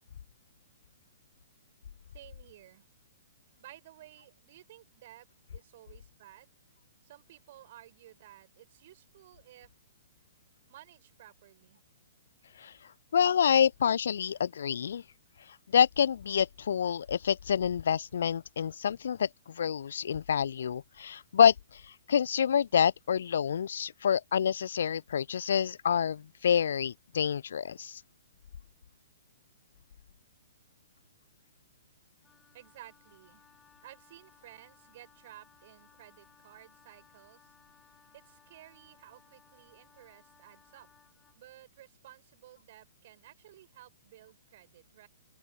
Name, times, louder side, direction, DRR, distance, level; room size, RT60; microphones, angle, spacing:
voice 1, 2.1-2.9 3.6-6.5 7.0-9.7 10.7-11.8 32.5-33.5 33.8-37.5 38.1-40.9 41.4-45.1, right 14 dB, 45° right, 7.1 m, -55 dB
voice 2, 13.1-15.0 15.7-21.8 22.1-28.0, left 8 dB, 60° left, 0.3 m, -27 dB
Wind instrument woodwind instrument, 32.2-41.4, left 7 dB, 15° left, 8.0 m, -63 dB
open air
figure-of-eight pair, 115°, 0 cm